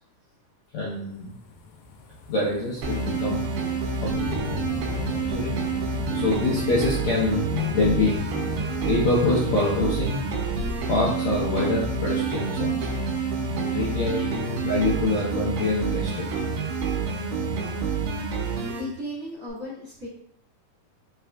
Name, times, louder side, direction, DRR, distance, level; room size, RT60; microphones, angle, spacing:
voice 1, 0.7-1.3 2.3-3.5 4.0-4.2 5.1-5.5 6.1-8.1 8.8-10.2 10.9-12.9 13.5-16.3, left 2 dB, 75° left, -6 dB, 1.7 m, -25 dB
sound 1, 0.9-19.1 19.5-19.6, left 3 dB, 90° left, 2.4 m, -40 dB
sound 2, 2.8-18.8, right 4 dB, 80° right, 2.4 m, -28 dB
sound 3, 7.4-10.8 11.3-11.4, left 7 dB, 40° left, 0.9 m, -34 dB
voice 2, 18.5-20.1, left 1 dB, 45° right, -9 dB, 1.9 m, -36 dB
5.4 x 3.4 x 2.3 m, 0.69 s
omnidirectional pair, 4.1 m